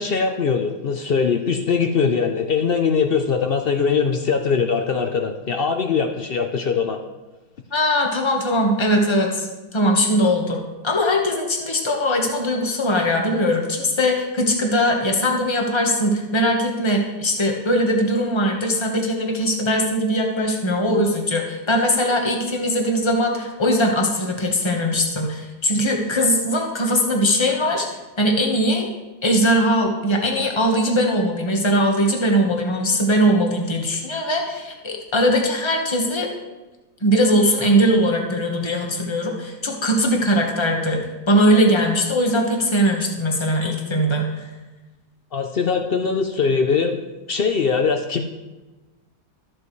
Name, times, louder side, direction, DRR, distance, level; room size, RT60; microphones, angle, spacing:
voice 1, 0.0-7.0 45.3-47.0 47.3-48.2, left 5 dB, 70° left, 5 dB, 0.5 m, -21 dB
voice 2, 7.7-9.5 9.7-27.9 28.2-28.9 29.2-36.3 37.0-44.5, equal, 20° left, 1 dB, 1.2 m, -20 dB
13.5 x 7.7 x 3.2 m, 1.1 s
omnidirectional pair, 1.8 m